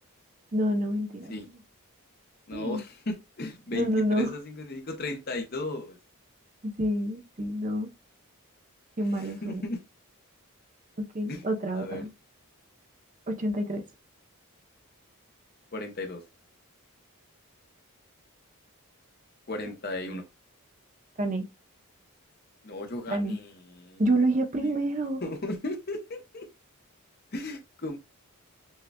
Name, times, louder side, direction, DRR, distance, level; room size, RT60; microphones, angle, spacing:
voice 1, 0.5-1.6 2.5-2.8 3.7-4.3 6.6-7.9 9.0-9.6 11.0-12.1 13.3-13.8 20.1-20.2 21.2-21.5 23.1-23.4 24.0-25.2, right 1 dB, 35° right, 0.6 m, -28 dB
voice 2, 2.5-6.0 9.0-9.8 11.3-11.4 11.7-12.0 15.7-16.2 19.5-20.2 22.6-24.0 24.6-24.7 25.2-26.5 27.3-28.0, left 2 dB, 45° left, 0.8 m, -35 dB
6.2 x 2.3 x 2.2 m
head